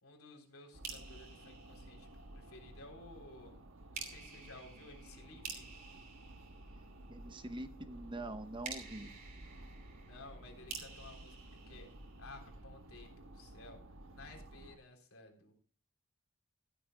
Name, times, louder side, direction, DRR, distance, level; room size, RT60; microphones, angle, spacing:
voice 1, 0.0-2.1 2.3-3.6 3.9-5.7 10.0-11.4 11.7-11.9 12.2-13.8 14.1-15.5, left 2 dB, 75° left, 3 dB, 3.6 m, -55 dB
sound 1, 0.7-14.8, right 1 dB, 65° right, 1.2 m, -54 dB
sound 2, 0.8-2.6 3.9-7.3 8.6-12.5, right 5 dB, 40° right, 2.8 m, -50 dB
voice 2, 7.1-9.1, right 1 dB, 25° right, 9 dB, 0.9 m, -44 dB
14.5 x 12.5 x 2.2 m, 0.43 s
head